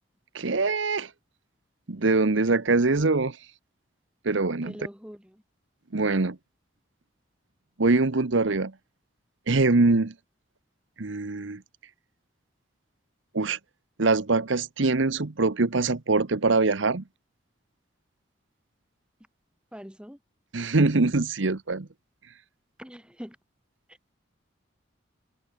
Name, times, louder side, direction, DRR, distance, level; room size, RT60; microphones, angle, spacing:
voice 1, 0.3-1.1 1.9-3.4 4.2-4.7 5.9-6.4 7.8-8.7 9.5-10.1 11.0-11.6 13.3-13.6 14.0-17.0 20.5-21.9, right 3 dB, 70° right, 1.0 m, -23 dB
voice 2, 4.6-5.4 19.7-20.2 22.8-23.4 23.9-24.0, equal, 5° right, 3.9 m, -43 dB
head